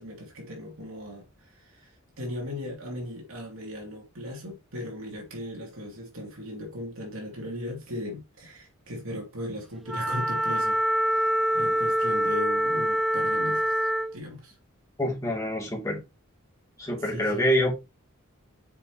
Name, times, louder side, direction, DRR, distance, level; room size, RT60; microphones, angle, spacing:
voice 1, 0.0-11.3 11.5-14.5 17.0-17.5, left 1 dB, 80° right, 3.1 m, -38 dB
Wind instrument woodwind instrument, 9.9-14.2, right 1 dB, ahead, 0.3 m, -25 dB
voice 2, 15.0-16.0 16.8-17.7, equal, 15° left, 3.0 m, -26 dB
6.8 x 5.3 x 3.1 m
head